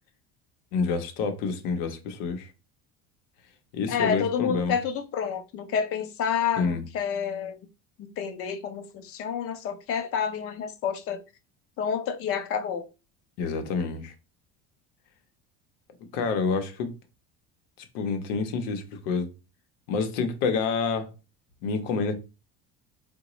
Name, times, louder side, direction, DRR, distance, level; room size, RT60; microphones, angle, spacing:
voice 1, 0.7-2.5 3.7-4.8 6.6-6.8 13.4-14.1 16.1-16.9 17.8-19.3 19.9-21.1 21.6-22.1, left 4 dB, 90° left, 0.8 m, -28 dB
voice 2, 3.9-7.6 8.0-11.2 11.8-12.9, left 7 dB, 50° left, 0.5 m, -29 dB
3.8 x 2.1 x 2.9 m
cardioid pair, 130°, 30 cm